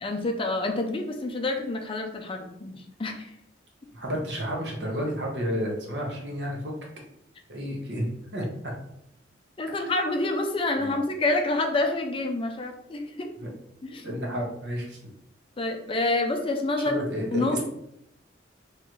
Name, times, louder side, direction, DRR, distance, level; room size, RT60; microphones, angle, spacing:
voice 1, 0.0-3.3 9.6-13.3 13.8-14.1 15.6-17.0 17.3-17.6, left 2 dB, 30° left, 4 dB, 0.4 m, -28 dB
voice 2, 3.9-6.7 7.5-8.1 8.3-8.7 9.8-9.9 10.8-11.0 13.4-13.5 14.0-15.0 16.8-17.6, equal, 65° right, -1 dB, 1.1 m, -31 dB
3.8 x 3.1 x 3.1 m, 0.77 s
head